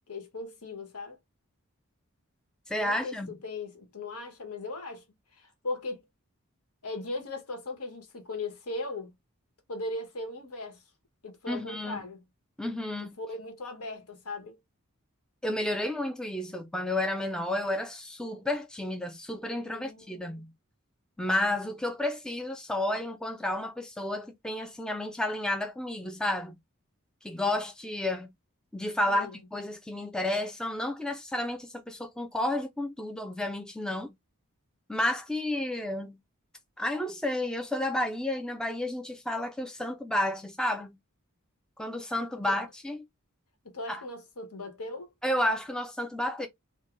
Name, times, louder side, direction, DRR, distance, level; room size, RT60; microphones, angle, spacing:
voice 1, 0.1-1.2 2.8-5.0 5.3-6.0 6.8-9.1 9.7-10.8 11.2-12.2 13.0-14.6 19.7-20.4 29.0-29.4 42.3-42.5 43.6-45.1, left 2 dB, 85° left, 1.1 m, -38 dB
voice 2, 2.7-3.3 11.5-12.1 12.6-13.2 15.4-20.5 21.2-26.5 27.2-28.3 28.7-34.1 34.9-36.2 36.8-41.0 41.8-43.0 43.9-44.0 45.2-46.5, left 1 dB, 5° left, 0.3 m, -31 dB
3.6 x 2.2 x 3.0 m
head